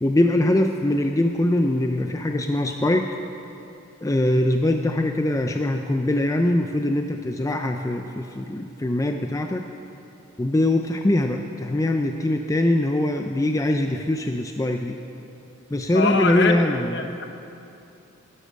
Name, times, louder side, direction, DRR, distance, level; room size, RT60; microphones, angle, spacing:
voice 1, 0.0-3.1 4.0-9.6 10.4-15.0 15.7-17.1, left 1 dB, 15° left, 4 dB, 0.4 m, -22 dB
voice 2, 15.9-16.6 16.9-17.2, left 4 dB, 55° left, 6 dB, 0.9 m, -23 dB
12.0 x 11.0 x 6.4 m, 2.8 s
head